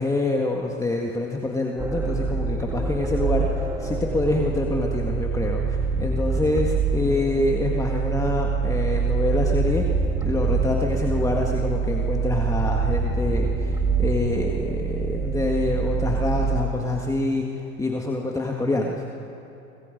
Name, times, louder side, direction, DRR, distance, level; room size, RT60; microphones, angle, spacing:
voice 1, 0.0-9.9 10.2-17.4 17.8-19.1, left 2 dB, 10° left, 0 dB, 1.8 m, -26 dB
sound 1, 1.8-16.6, right 5 dB, 5° right, 2.5 m, -25 dB
28.5 x 26.0 x 5.3 m, 2.9 s
hypercardioid pair, 115°, 38 cm